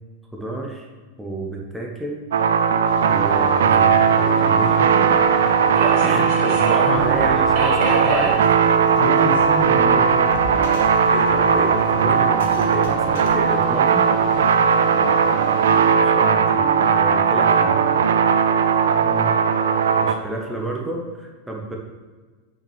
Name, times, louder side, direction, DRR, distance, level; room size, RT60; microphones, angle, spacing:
voice 1, 0.3-0.9 1.2-2.3 3.1-5.2 6.0-8.4 11.1-14.1 15.9-17.8 20.0-21.8, right 2 dB, 5° right, -1 dB, 1.2 m, -30 dB
sound 1, 2.3-20.1, right 6 dB, 60° right, 0.5 m, -18 dB
Subway metro underground, 2.9-15.9, right 2 dB, 45° right, 2.1 m, -31 dB
sound 2, 6.9-13.4, equal, 55° left, 1.1 m, -38 dB
voice 2, 8.9-10.4 14.9-15.2 19.0-19.7, left 2 dB, 75° left, -5 dB, 2.4 m, -29 dB
8.8 x 5.9 x 3.4 m, 1.4 s
figure-of-eight pair, 90°, 0 cm